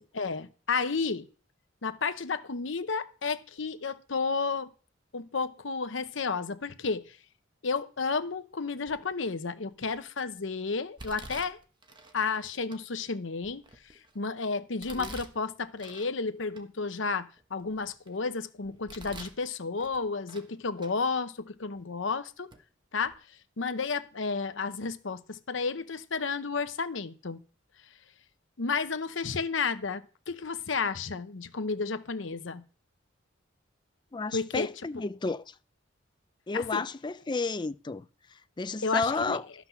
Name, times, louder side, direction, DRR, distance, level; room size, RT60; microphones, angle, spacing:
voice 1, 0.2-1.3 1.8-4.7 5.1-7.0 7.6-11.6 12.1-13.6 14.1-22.5 22.9-23.1 23.6-27.4 28.6-32.6 34.3-34.7 36.5-36.8 38.8-39.4, left 4 dB, 70° left, 0.8 m, -32 dB
Domestic sounds home sounds, 8.9-9.3 9.8-10.3 11.0-12.2 12.7-12.8 13.4-14.2 14.8-16.1 16.5-16.6 17.2-18.2 18.6-19.4 19.8-20.5 20.8-20.9 21.8-21.9 22.5-22.6 23.0-23.1, right 2 dB, 25° right, 1.2 m, -47 dB
voice 2, 34.1-35.5 36.5-38.1 38.6-39.5, left 3 dB, 25° left, 0.4 m, -32 dB
13.0 x 6.0 x 5.8 m
head